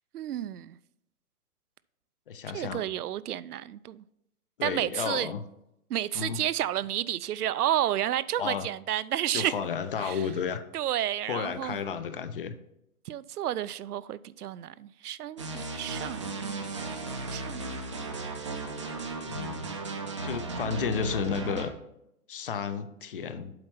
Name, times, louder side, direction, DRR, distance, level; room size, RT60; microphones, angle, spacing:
voice 1, 0.1-0.8 2.5-4.0 4.6-5.3 5.9-9.5 10.0-10.2 10.7-11.8 13.1-16.7 17.3-17.8 20.4-20.7, right 12 dB, 85° right, 0.5 m, -31 dB
voice 2, 2.3-2.8 4.6-5.4 6.1-6.4 8.4-8.7 9.3-10.6 11.3-12.6 19.3-19.6 20.2-21.7 22.3-23.5, left 7 dB, 40° left, 0.5 m, -32 dB
sound 1, 15.4-21.7, right 2 dB, 20° right, 0.4 m, -35 dB
7.8 x 4.4 x 5.5 m
hypercardioid pair, 145°, 44 cm